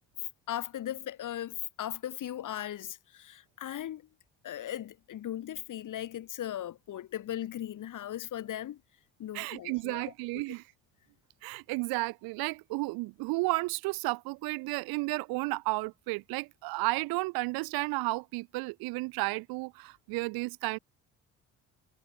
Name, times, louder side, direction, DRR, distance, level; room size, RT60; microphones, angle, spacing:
voice 1, 0.5-4.0 4.4-8.8 9.2-10.4, left 11 dB, 55° left, 1.4 m, -38 dB
voice 2, 9.3-10.6 11.4-20.8, right 24 dB, 75° right, 0.7 m, -33 dB
hypercardioid pair, 55°, 37 cm